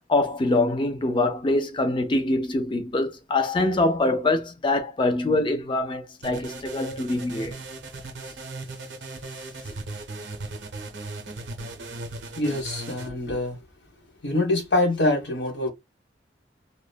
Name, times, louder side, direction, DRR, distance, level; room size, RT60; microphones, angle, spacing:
voice 1, 0.1-7.5, left 2 dB, 30° left, 0.5 m, -24 dB
sound 1, 6.2-13.1, right 2 dB, 90° right, 0.6 m, -37 dB
voice 2, 12.3-13.6 14.2-15.7, left 2 dB, 80° left, 1.2 m, -24 dB
2.9 x 2.1 x 2.2 m
head